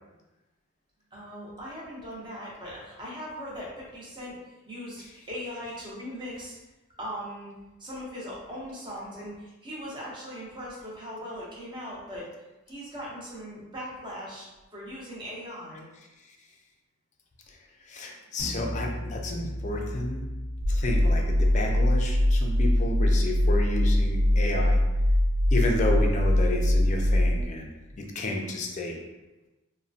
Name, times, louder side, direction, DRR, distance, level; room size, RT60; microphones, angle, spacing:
voice 1, 1.1-4.4 4.7-6.6 7.0-7.5 7.8-12.3 12.7-15.9, equal, 25° right, -5 dB, 0.7 m, -39 dB
voice 2, 17.9-20.2 20.7-24.8 25.5-29.0, left 2 dB, 35° left, 2 dB, 0.4 m, -31 dB
sound 1, 18.4-24.4, equal, 60° right, 1.1 m, -38 dB
sound 2, 20.6-27.4, left 1 dB, 80° right, 0.5 m, -22 dB
2.9 x 2.1 x 2.6 m, 1.1 s
head